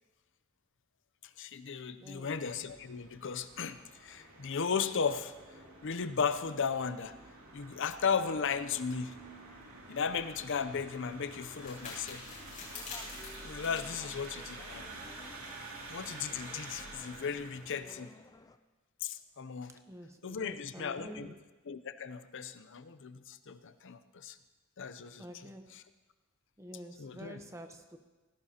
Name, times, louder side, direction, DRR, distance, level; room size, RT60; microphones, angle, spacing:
voice 1, 1.2-7.1 7.5-9.2 9.9-12.2 13.4-14.9 15.9-18.1 19.0-19.8 20.2-21.3 21.7-24.4 24.8-25.2 25.7-25.8 27.0-27.4, left 6 dB, 60° left, 12 dB, 0.6 m, -36 dB
voice 2, 2.0-2.3 14.3-14.5 19.9-21.3 25.2-25.6 26.6-28.0, equal, 15° right, 6 dB, 0.9 m, -48 dB
sound 1, 2.3-17.9, right 2 dB, 80° right, 2.7 m, -49 dB
sound 2, 10.1-15.2, left 4 dB, 35° left, 5.5 m, -48 dB
sound 3, 12.7-18.6, left 2 dB, 15° left, 0.4 m, -56 dB
17.5 x 15.0 x 2.9 m, 1.2 s
head